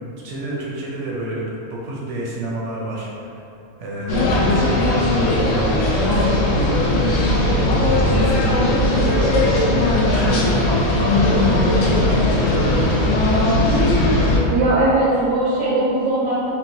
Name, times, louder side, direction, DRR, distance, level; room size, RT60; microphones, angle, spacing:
voice 1, 0.2-3.4 3.8-4.8 5.0-6.4 7.0-9.7 10.0-10.7 11.3-13.4, right 1 dB, 65° right, -4 dB, 0.8 m, -29 dB
sound 1, 4.1-14.4, left 1 dB, 65° left, 0.8 m, -18 dB
voice 2, 14.5-16.5, right 2 dB, 85° right, -7 dB, 1.1 m, -19 dB
3.8 x 2.2 x 2.6 m, 2.6 s
omnidirectional pair, 1.6 m